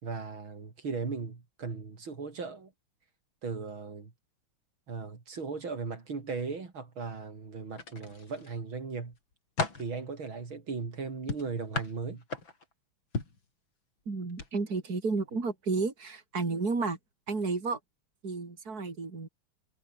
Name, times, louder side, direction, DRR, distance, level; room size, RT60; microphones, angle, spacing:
voice 1, 0.0-2.7 3.4-4.1 4.9-9.1 9.7-12.2, right 4 dB, 80° right, 4.4 m, -37 dB
sound 1, 7.7-8.5 9.0-9.9 11.3-12.7 13.1-13.4 14.3-14.5 14.9-15.0, left 4 dB, 70° left, 4.9 m, -35 dB
voice 2, 14.1-17.0 17.3-17.8 18.2-19.3, right 4 dB, 45° right, 4.2 m, -32 dB
omnidirectional pair, 2.2 m